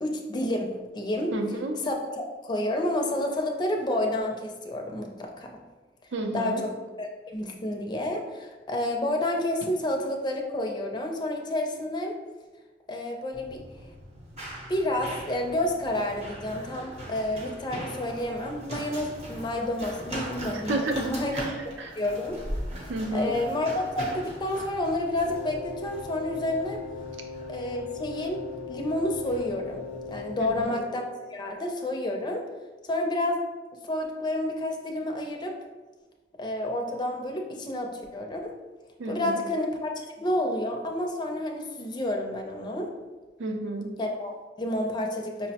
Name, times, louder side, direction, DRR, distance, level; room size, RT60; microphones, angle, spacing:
voice 1, 0.0-1.3 1.8-5.5 6.3-6.7 7.0-12.1 12.9-13.6 14.7-21.5 22.0-22.4 22.8-26.8 27.5-28.4 28.7-29.8 30.1-32.4 32.9-33.4 33.8-35.6 36.4-38.5 39.1-42.9 44.0-45.5, left 1 dB, 25° left, 2 dB, 0.4 m, -30 dB
voice 2, 1.3-1.8 6.1-6.6 20.7-21.9 22.9-23.3 30.4-30.5 39.0-39.4 43.4-43.9, right 2 dB, 85° right, 3 dB, 0.5 m, -31 dB
Run, 13.3-30.6, equal, 35° right, 0.7 m, -40 dB
Wind instrument woodwind instrument, 25.2-31.0, left 4 dB, 90° left, 0.4 m, -39 dB
5.4 x 2.0 x 2.8 m, 1.2 s
head